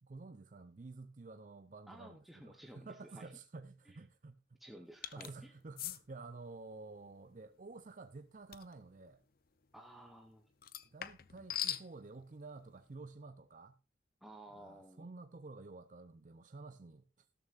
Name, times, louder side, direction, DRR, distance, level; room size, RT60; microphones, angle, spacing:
voice 1, 0.0-4.4 5.1-9.2 10.9-13.8 14.5-17.3, right 3 dB, 45° right, 0.5 m, -51 dB
voice 2, 1.9-3.3 3.8-4.0 4.6-5.5 9.7-10.4 14.2-15.0, right 1 dB, ahead, 1.1 m, -54 dB
sound 1, 5.0-5.3 5.8-6.0 8.5-8.7 10.6-11.9, left 11 dB, 50° left, 0.6 m, -40 dB
13.0 x 13.0 x 2.5 m
head